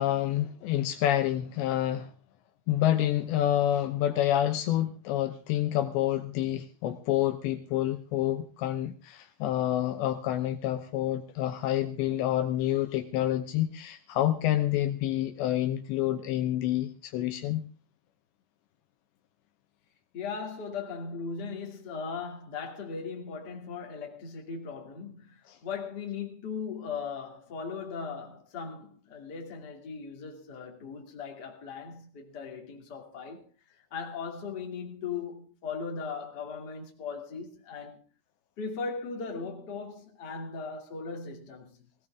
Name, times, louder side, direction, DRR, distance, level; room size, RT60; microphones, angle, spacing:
voice 1, 0.0-2.1 2.7-17.7 25.5-25.6, left 12 dB, 75° left, 2.9 m, -28 dB
voice 2, 20.1-33.5 33.9-38.0 38.6-41.9, left 5 dB, 30° left, 2.1 m, -38 dB
18.0 x 17.5 x 3.7 m
omnidirectional pair, 5.5 m